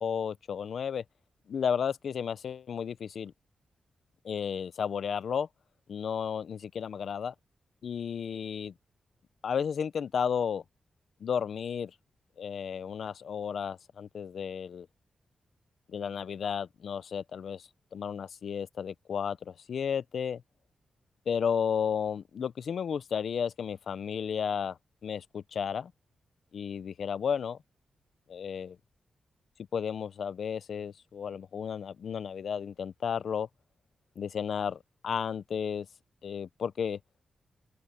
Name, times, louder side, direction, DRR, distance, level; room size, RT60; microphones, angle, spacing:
voice 1, 0.0-1.0 1.5-3.3 4.2-5.5 5.9-7.3 7.8-8.7 9.4-10.6 11.2-11.9 12.4-14.9 15.9-20.4 21.3-25.9 26.5-27.6 28.3-28.8 29.7-33.5 34.2-35.9 36.2-37.0, left 7 dB, 65° left, 0.7 m, -33 dB
open air
wide cardioid pair, 170°, 0 cm